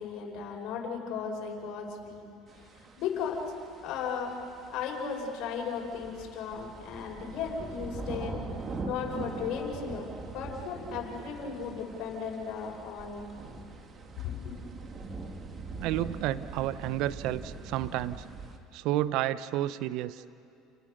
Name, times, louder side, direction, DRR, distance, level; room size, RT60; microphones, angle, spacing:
voice 1, 0.0-2.2 3.0-3.4 3.8-4.4 4.7-8.4 8.8-10.1 10.3-13.3 14.2-14.6, left 6 dB, 60° left, 1 dB, 5.6 m, -35 dB
sound 1, 2.5-18.6, right 3 dB, 35° right, 3.1 m, -42 dB
voice 2, 15.8-18.2 18.7-20.2, right 14 dB, 65° right, 15 dB, 0.9 m, -31 dB
29.5 x 29.0 x 6.7 m, 2.5 s
hypercardioid pair, 75°, 0 cm